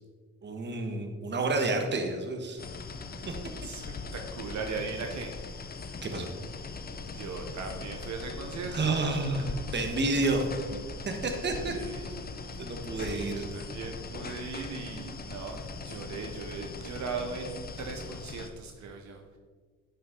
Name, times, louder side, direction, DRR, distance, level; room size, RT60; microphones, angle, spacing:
voice 1, 0.4-2.6 3.3-3.4 6.0-6.3 8.7-10.5 11.0-11.7 12.0-12.1 12.6-13.4, right 3 dB, 35° right, 4 dB, 1.3 m, -30 dB
sound 1, 2.6-18.5, left 4 dB, 30° left, 0.7 m, -40 dB
voice 2, 3.6-5.3 7.1-8.8 11.5-12.3 12.9-19.4, right 4 dB, 65° right, 3 dB, 1.0 m, -39 dB
9.7 x 5.6 x 3.8 m, 1.5 s
cardioid pair, 90°, 30 cm